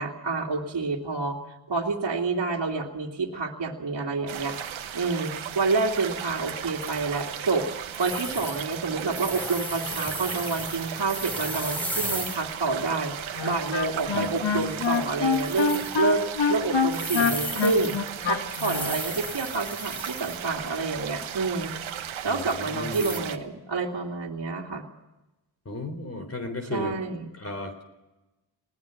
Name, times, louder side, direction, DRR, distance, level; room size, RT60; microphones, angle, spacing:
voice 1, 0.0-4.6 4.9-7.7 8.0-13.1 13.4-16.2 16.5-18.0 18.2-21.7 22.2-24.8 26.7-27.2, right 3 dB, 55° right, -2 dB, 2.6 m, -28 dB
sound 1, 4.3-23.4, right 9 dB, 90° right, 1.3 m, -36 dB
sound 2, 6.8-7.6 7.9-12.5 12.8-12.9 13.5-13.7 14.0-14.2 14.6-16.0 16.8-20.5 20.9-21.0 22.4-23.2, equal, 5° left, 3.5 m, -36 dB
Wind instrument woodwind instrument, 13.4-19.0, left 5 dB, 65° left, 2.0 m, -25 dB
voice 2, 14.1-14.6 22.3-23.2 25.7-26.9 27.4-27.8, left 2 dB, 30° left, 6 dB, 3.8 m, -35 dB
20.5 x 18.0 x 7.1 m, 1.0 s
cardioid pair, 65°, 46 cm